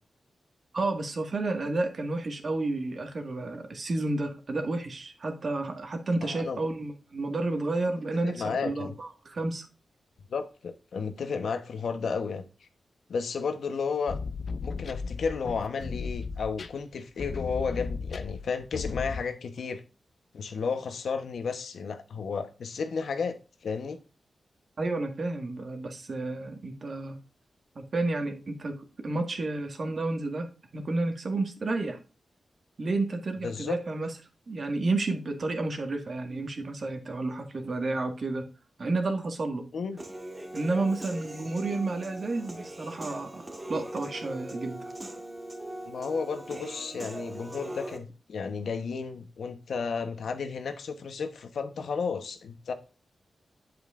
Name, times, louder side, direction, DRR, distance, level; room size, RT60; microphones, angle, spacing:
voice 1, 0.7-9.7 24.8-27.2 27.8-30.5 30.7-32.0 32.8-34.1 34.5-38.5 38.8-39.7 40.5-44.9, right 2 dB, 50° right, 1.8 m, -31 dB
voice 2, 6.2-6.6 8.2-9.0 10.3-12.4 13.1-14.2 14.6-19.8 20.3-23.3 23.6-24.0 33.4-33.8 39.7-40.0 45.9-52.7, left 5 dB, 85° left, 1.1 m, -33 dB
sound 1, 14.1-19.2, left 5 dB, 65° left, 0.6 m, -35 dB
Human voice / Piano, 40.0-48.0, right 1 dB, 20° right, 1.9 m, -40 dB
8.0 x 7.9 x 2.6 m
wide cardioid pair, 105°, 0 cm